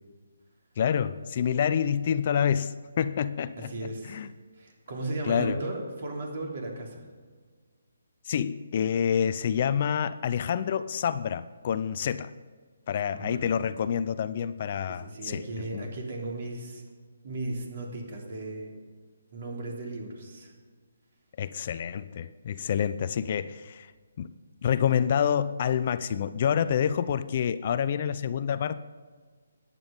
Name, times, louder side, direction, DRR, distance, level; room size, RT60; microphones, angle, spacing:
voice 1, 0.8-4.3 5.3-5.6 8.3-12.3 12.9-15.4 15.7-15.9 21.4-23.9 24.2-24.3 24.6-28.8, left 8 dB, 40° left, 14 dB, 0.4 m, -27 dB
voice 2, 3.5-4.2 4.5-7.1 13.1-13.5 14.9-16.8 17.2-18.8 19.3-20.5 23.0-23.2, right 2 dB, 50° right, 1 dB, 3.2 m, -36 dB
14.0 x 9.8 x 5.2 m, 1.5 s
hypercardioid pair, 165°, 0 cm